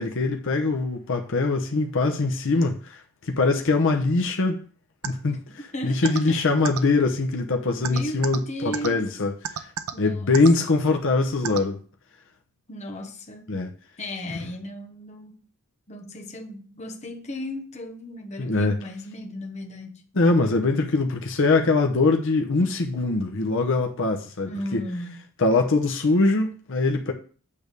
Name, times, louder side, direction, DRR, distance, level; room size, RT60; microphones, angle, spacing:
voice 1, 0.0-4.6 5.0-5.4 5.8-9.7 10.0-11.8 13.5-13.7 18.4-18.8 20.1-24.8 25.4-27.1, left 3 dB, 60° left, 0.8 m, -22 dB
sound 1, 5.0-5.1 6.0-6.2 6.6-6.8 7.8-8.4 8.7-8.9 9.4-9.9 10.3-10.5 11.4-11.6, right 8 dB, 85° right, 0.7 m, -28 dB
voice 2, 5.7-6.7 7.7-9.1 9.9-10.4 12.7-13.5 14.0-15.4 15.9-20.0 24.4-25.3, left 1 dB, 30° left, 1.1 m, -36 dB
8.6 x 3.5 x 6.7 m
head